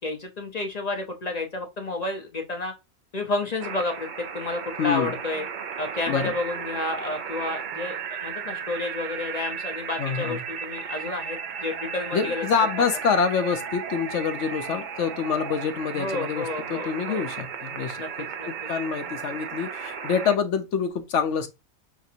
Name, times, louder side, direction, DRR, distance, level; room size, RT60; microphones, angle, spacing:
voice 1, 0.0-2.7 3.1-4.1 4.3-5.5 5.8-12.4 15.9-17.3 18.0-18.1 18.4-18.5, left 2 dB, 45° left, 0.5 m, -31 dB
sound 1, 3.6-20.4, right 7 dB, 75° right, 0.4 m, -35 dB
voice 2, 4.8-5.1 6.1-6.3 10.0-10.4 12.1-21.5, left 6 dB, 65° left, 0.9 m, -26 dB
5.8 x 2.5 x 2.7 m
omnidirectional pair, 1.4 m